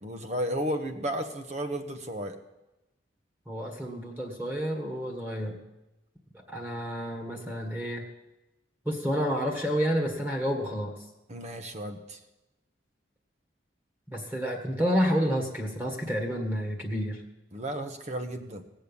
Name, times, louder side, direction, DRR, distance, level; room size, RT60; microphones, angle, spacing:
voice 1, 0.0-2.4 11.3-12.2 17.5-18.6, right 1 dB, 35° right, 7 dB, 1.2 m, -33 dB
voice 2, 3.5-5.6 6.5-8.0 8.8-10.9 14.1-17.2, equal, 10° right, 2 dB, 1.7 m, -29 dB
19.0 x 7.9 x 7.1 m, 0.97 s
head